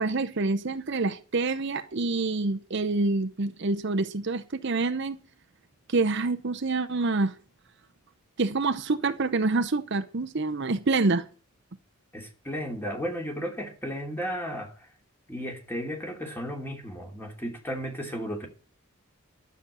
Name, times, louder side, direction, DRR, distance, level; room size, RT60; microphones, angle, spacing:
voice 1, 0.0-5.2 5.9-7.3 8.4-11.3, right 3 dB, 55° right, 0.8 m, -27 dB
voice 2, 12.1-14.9 15.3-18.5, equal, 10° left, 2.8 m, -34 dB
12.0 x 7.1 x 8.2 m
head